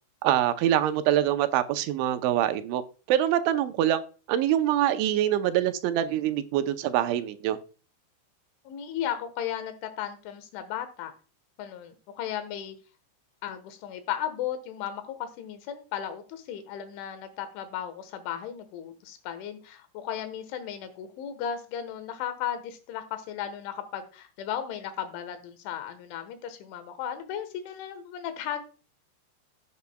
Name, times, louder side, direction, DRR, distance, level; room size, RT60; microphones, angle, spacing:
voice 1, 0.2-2.8 3.1-4.0 4.3-7.6, right 11 dB, 85° right, 10 dB, 3.1 m, -24 dB
voice 2, 8.7-11.1 11.6-12.8 13.4-28.6, left 9 dB, 85° left, 9 dB, 3.7 m, -35 dB
15.0 x 8.1 x 2.2 m, 0.36 s
omnidirectional pair, 5.3 m